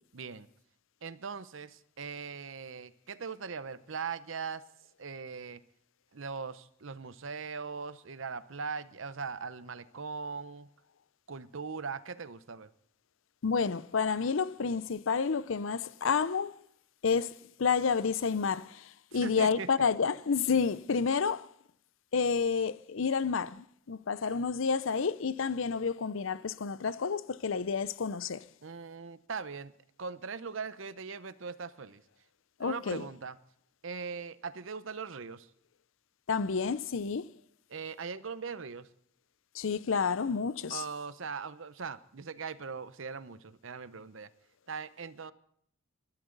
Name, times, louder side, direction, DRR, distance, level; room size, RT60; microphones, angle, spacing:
voice 1, 0.1-0.5 1.0-4.6 5.0-5.6 6.1-10.7 11.3-12.7 19.1-19.9 28.6-29.7 30.0-32.0 32.6-33.4 33.8-35.5 37.7-38.9 40.7-44.3 44.7-45.3, right 5 dB, 65° right, 0.8 m, -40 dB
voice 2, 13.4-16.5 17.0-21.5 22.1-28.4 32.6-33.0 36.3-37.3 39.5-40.8, left 5 dB, 70° left, 0.6 m, -30 dB
22.0 x 13.0 x 3.9 m
head